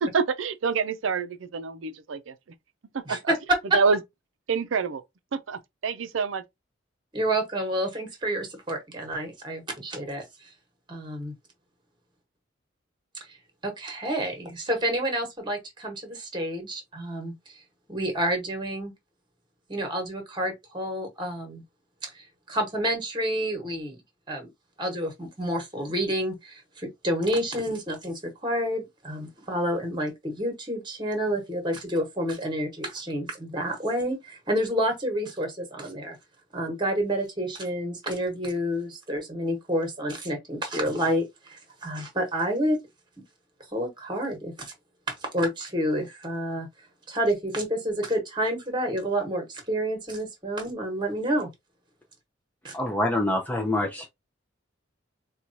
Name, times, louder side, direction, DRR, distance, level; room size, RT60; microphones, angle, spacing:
voice 1, 0.0-2.3 3.1-3.2 3.7-4.0 4.5-5.0 5.3-6.4, right 5 dB, 80° right, 0.5 m, -27 dB
voice 2, 7.1-10.5 10.9-11.3 13.3-13.4 13.6-17.3 17.9-18.9 19.7-21.6 22.1-24.0 24.3-24.5 24.8-36.2 36.5-42.8 43.7-44.7 45.1-46.7 47.1-51.5 52.6-52.8, equal, 25° right, 1.1 m, -29 dB
voice 3, 52.7-54.1, left 1 dB, 10° left, 0.4 m, -26 dB
4.4 x 2.3 x 2.6 m
head